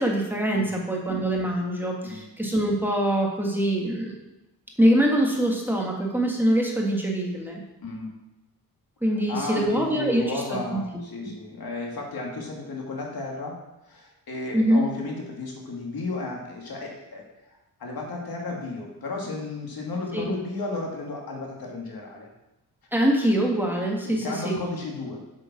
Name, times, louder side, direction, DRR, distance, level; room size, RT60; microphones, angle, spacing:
voice 1, 0.0-4.2 4.8-7.6 9.0-10.6 11.3-11.4 14.5-14.8 20.1-20.3 22.9-24.6, right 1 dB, 5° right, -1 dB, 1.8 m, -24 dB
voice 2, 7.8-8.1 9.3-13.6 13.8-22.3 24.0-25.2, left 3 dB, 65° left, -1 dB, 2.6 m, -33 dB
7.7 x 7.4 x 6.0 m, 0.95 s
wide cardioid pair, 110°, 40 cm